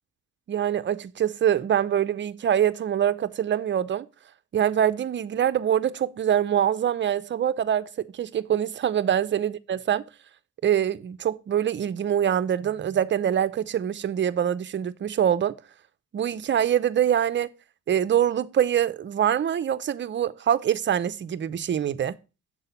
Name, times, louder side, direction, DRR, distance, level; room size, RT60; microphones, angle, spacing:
voice 1, 0.5-4.1 4.5-10.0 10.6-15.6 16.1-17.5 17.9-22.2, right 9 dB, 40° right, 0.5 m, -24 dB
7.4 x 4.0 x 5.4 m
cardioid pair, 90°, 30 cm